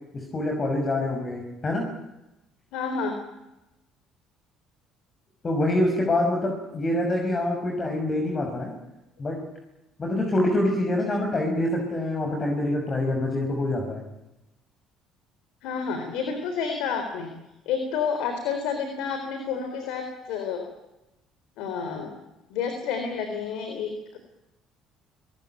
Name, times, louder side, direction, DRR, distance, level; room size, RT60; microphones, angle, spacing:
voice 1, 0.1-1.9 5.4-8.7 9.2-9.4 10.0-14.0, left 1 dB, 35° left, 1 dB, 6.1 m, -25 dB
voice 2, 2.7-3.2 15.6-17.3 17.7-20.7 21.6-22.1 22.5-24.2, left 6 dB, 75° left, 6 dB, 3.9 m, -29 dB
23.0 x 20.5 x 9.2 m, 0.96 s
supercardioid pair, 70°, 0 cm